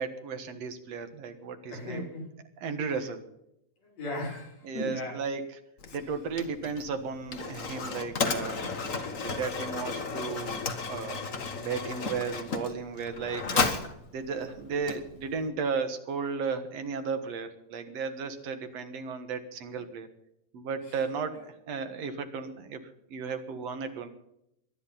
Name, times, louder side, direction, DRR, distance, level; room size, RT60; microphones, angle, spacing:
voice 1, 0.0-2.0 2.6-3.2 4.6-5.4 5.9-8.7 9.0-11.3 11.6-13.7 14.1-20.1 20.5-22.8 23.1-24.1, right 5 dB, 55° right, 8 dB, 2.3 m, -34 dB
voice 2, 1.7-2.4 2.9-3.0 3.8-5.2 5.9-6.0 19.7-19.8 20.8-21.0, left 1 dB, 50° left, -1 dB, 6.4 m, -38 dB
Mechanisms, 5.8-15.5, left 4 dB, 65° left, 0.7 m, -34 dB
22.5 x 10.5 x 5.7 m, 0.79 s
omnidirectional pair, 4.0 m